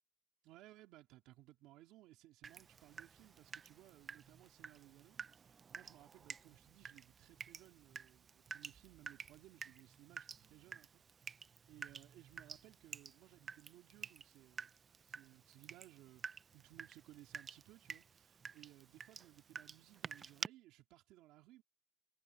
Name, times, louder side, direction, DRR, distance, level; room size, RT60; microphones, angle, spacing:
voice 1, 0.4-11.0 11.7-14.7 15.0-21.6, right 16 dB, 85° right, 3.4 m, -62 dB
Water tap faucet / Drip, 2.4-20.5, right 6 dB, 35° right, 0.4 m, -51 dB
cardioid pair, 115°, 0 cm